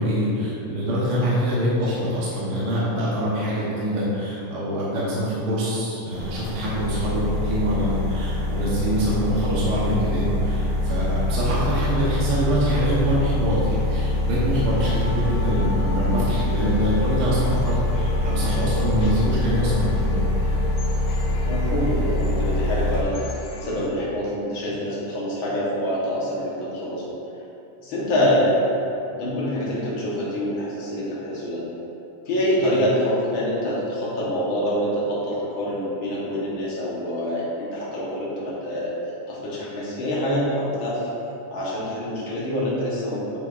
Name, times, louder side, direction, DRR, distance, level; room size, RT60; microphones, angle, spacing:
voice 1, 0.0-20.3, equal, 70° right, -8 dB, 1.3 m, -24 dB
sound 1, 6.1-23.0, left 1 dB, 85° right, 0.7 m, -24 dB
sound 2, 14.6-23.9, left 2 dB, 85° left, 1.7 m, -38 dB
voice 2, 21.4-23.2 23.6-27.0 27.8-28.7 29.0-31.6 32.2-38.9 39.3-41.0 41.5-43.4, equal, 60° left, -7 dB, 1.3 m, -25 dB
9.3 x 5.9 x 2.5 m, 2.9 s
omnidirectional pair, 3.9 m